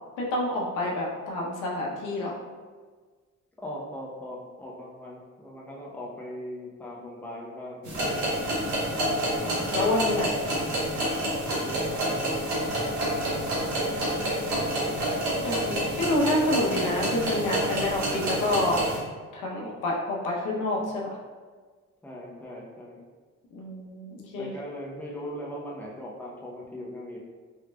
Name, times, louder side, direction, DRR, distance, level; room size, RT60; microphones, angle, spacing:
voice 1, 0.2-2.3 9.4-10.3 13.1-14.0 15.4-18.9 19.3-21.2 23.5-24.5, left 1 dB, 90° left, -2 dB, 0.7 m, -28 dB
voice 2, 3.6-9.1 11.5-12.3 14.5-15.5 20.8-20.9 22.0-23.0 24.4-27.2, equal, 5° left, -3 dB, 0.6 m, -40 dB
sound 1, 7.8-19.0, right 1 dB, 75° right, 1.2 m, -28 dB
3.6 x 3.1 x 2.2 m, 1.4 s
cardioid pair, 90°, 30 cm